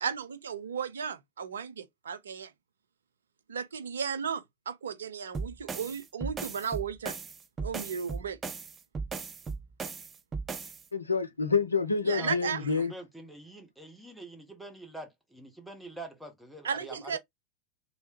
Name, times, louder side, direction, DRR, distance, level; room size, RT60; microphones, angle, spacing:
voice 1, 0.0-2.5 3.5-7.2 7.6-8.4 12.1-12.6 16.6-17.2, right 6 dB, 75° right, 0.5 m, -35 dB
sound 1, 5.3-10.8, right 4 dB, 25° right, 0.5 m, -37 dB
voice 2, 10.9-12.9, left 5 dB, 85° left, 0.5 m, -28 dB
voice 3, 12.1-17.2, right 1 dB, 5° right, 1.0 m, -45 dB
3.2 x 2.8 x 2.9 m
figure-of-eight pair, 90°, 0 cm